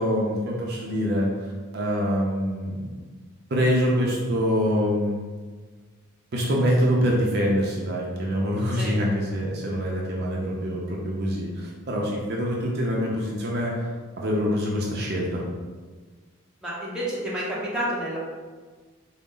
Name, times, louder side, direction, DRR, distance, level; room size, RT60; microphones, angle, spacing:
voice 1, 0.0-2.9 3.5-5.2 6.3-13.9 14.2-15.4, equal, 45° right, -3 dB, 0.5 m, -25 dB
voice 2, 16.6-18.2, equal, 5° right, -8 dB, 0.8 m, -29 dB
3.9 x 2.1 x 3.7 m, 1.4 s
head